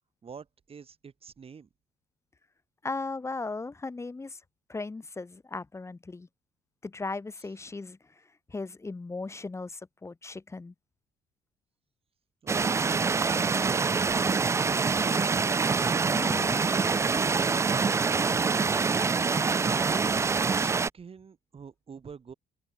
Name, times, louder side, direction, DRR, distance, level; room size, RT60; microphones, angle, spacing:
voice 1, 0.2-1.7 12.4-12.7 13.2-15.5 19.8-22.3, right 6 dB, 35° right, 4.1 m, -46 dB
voice 2, 2.8-4.4 4.7-6.3 6.8-8.0 8.5-10.7 16.1-16.6, left 3 dB, 15° left, 1.2 m, -37 dB
sound 1, 12.5-20.9, right 4 dB, 15° right, 0.3 m, -25 dB
cardioid pair, 110°, 17 cm